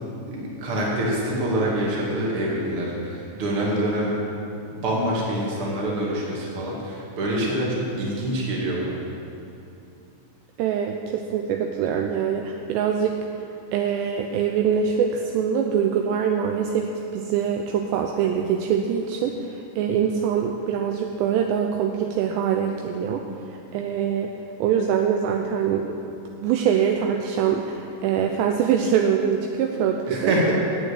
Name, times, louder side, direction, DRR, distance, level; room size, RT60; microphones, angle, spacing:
voice 1, 0.3-4.1 4.7-8.9 30.1-30.5, right 1 dB, 40° right, -4 dB, 2.1 m, -25 dB
voice 2, 10.6-13.2 13.7-23.2 23.7-24.3 24.6-25.9 26.4-30.3, right 8 dB, 85° right, 3 dB, 2.5 m, -24 dB
9.2 x 8.6 x 8.2 m, 2.7 s
omnidirectional pair, 5.5 m